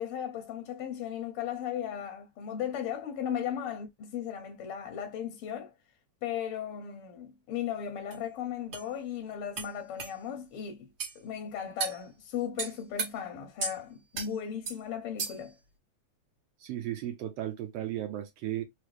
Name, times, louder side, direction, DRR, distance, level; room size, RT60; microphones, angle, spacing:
voice 1, 0.0-5.7 6.2-10.9 11.1-15.5, left 9 dB, 70° left, 1.4 m, -36 dB
sound 1, 8.1-8.2 8.7-8.9 9.6-9.7 10.0-10.1 11.0-11.2 11.8-12.0 12.6-13.1 13.6-13.8 14.1-14.3 14.7-14.8 15.2-15.5, right 5 dB, 45° right, 2.0 m, -34 dB
voice 2, 16.6-18.6, right 12 dB, 75° right, 1.5 m, -35 dB
4.8 x 2.3 x 3.2 m
omnidirectional pair, 3.4 m